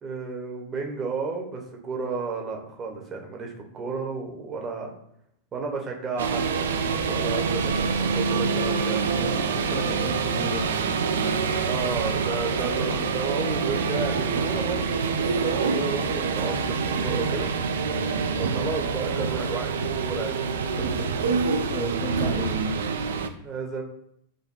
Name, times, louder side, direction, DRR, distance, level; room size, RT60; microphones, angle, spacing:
voice 1, 0.0-4.9 5.5-6.7 7.0-9.1 11.6-16.7 17.0-17.5 18.4-20.4 23.4-23.8, right 4 dB, 25° right, 1 dB, 0.8 m, -32 dB
sound 1, 6.2-23.3, right 5 dB, 65° right, 0.3 m, -26 dB
voice 2, 9.2-11.6 17.8-18.2 20.6-22.6, left 2 dB, 30° left, 5 dB, 0.5 m, -37 dB
5.1 x 2.2 x 3.0 m, 0.72 s
figure-of-eight pair, 90°, 0 cm